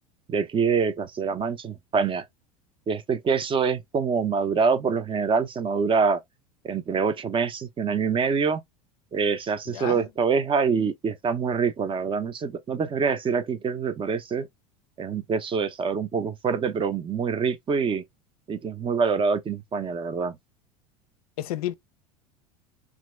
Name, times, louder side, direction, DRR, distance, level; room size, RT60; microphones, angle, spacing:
voice 1, 0.3-2.2 2.9-6.2 6.6-8.6 9.1-14.5 15.0-18.0 18.5-20.4, right 5 dB, 25° right, 0.6 m, -25 dB
voice 2, 9.7-10.1 21.4-21.7, left 13 dB, 75° left, 0.4 m, -31 dB
2.9 x 2.5 x 3.1 m
hypercardioid pair, 80°, 20 cm